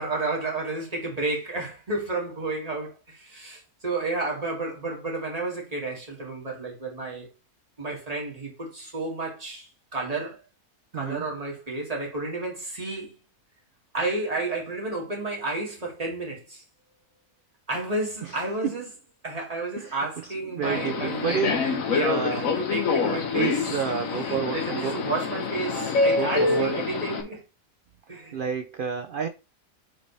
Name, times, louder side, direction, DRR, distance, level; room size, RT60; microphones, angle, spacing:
voice 1, 0.0-7.3 7.8-10.4 10.9-13.2 13.9-16.6 17.7-18.9 19.2-23.5 24.2-27.4 28.1-28.4, right 2 dB, 25° right, 2.4 m, -31 dB
voice 2, 10.9-11.2 18.2-18.4 19.8-21.6 22.0-22.4 23.0-25.0 26.1-26.8 28.3-29.3, right 7 dB, 80° right, 0.4 m, -30 dB
Subway metro underground, 20.6-27.2, left 4 dB, 65° left, 1.5 m, -26 dB
8.2 x 4.1 x 3.3 m
omnidirectional pair, 1.6 m